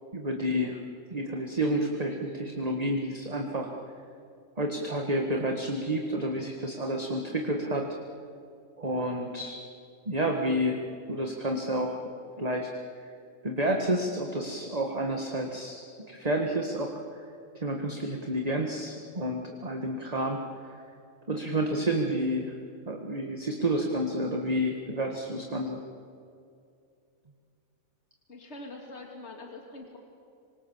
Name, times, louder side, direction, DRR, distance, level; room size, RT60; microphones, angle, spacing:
voice 1, 0.1-0.8 1.1-3.7 4.6-7.9 8.8-9.6 10.1-10.8 11.1-12.0 12.4-12.7 13.4-17.0 17.6-20.4 21.3-22.5 22.9-25.8, right 1 dB, 30° right, 2 dB, 1.8 m, -30 dB
voice 2, 28.3-30.0, left 2 dB, 50° left, 1 dB, 2.8 m, -44 dB
26.5 x 25.0 x 7.3 m, 2.5 s
omnidirectional pair, 1.4 m